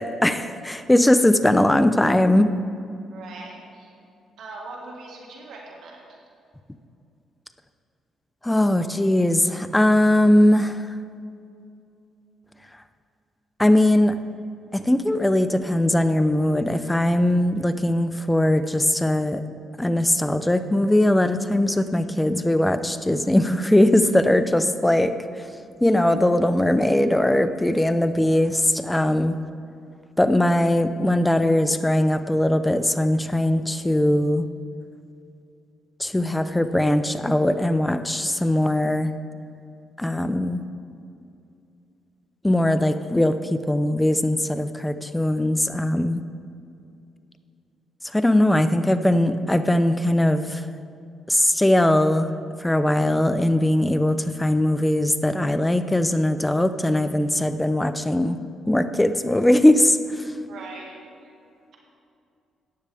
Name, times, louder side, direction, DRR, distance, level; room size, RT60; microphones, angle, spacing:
voice 1, 0.0-2.5 8.4-10.9 13.6-14.1 14.7-19.4 19.8-25.1 25.4-25.5 25.8-29.4 30.2-34.4 36.0-39.1 40.0-40.6 42.4-46.2 48.1-50.6 51.3-52.3 52.6-58.4 58.7-60.3, left 1 dB, 10° left, 10 dB, 0.6 m, -20 dB
voice 2, 3.1-4.0 4.4-6.2 60.5-61.0, right 3 dB, 75° right, -1 dB, 1.8 m, -40 dB
14.5 x 9.6 x 3.5 m, 2.6 s
cardioid pair, 90°, 0 cm